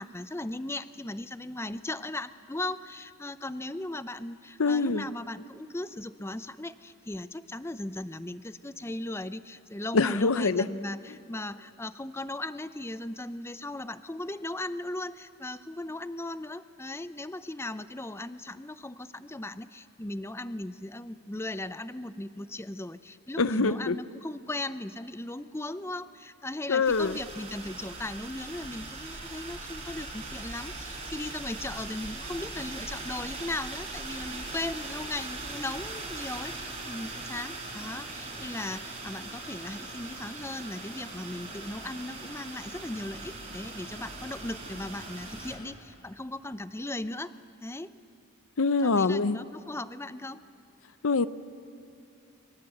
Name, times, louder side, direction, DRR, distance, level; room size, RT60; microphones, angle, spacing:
voice 1, 0.0-47.3 47.6-47.9 48.8-50.4, left 2 dB, 10° left, 14 dB, 0.6 m, -37 dB
voice 2, 4.6-5.1 9.9-10.7 11.1-11.2 23.4-24.0 26.7-27.2 48.6-49.4 51.0-51.3, left 4 dB, 75° left, 15 dB, 0.7 m, -24 dB
sound 1, 26.8-45.6, right 3 dB, 30° right, 5.1 m, -40 dB
28.5 x 24.0 x 8.0 m, 2.7 s
head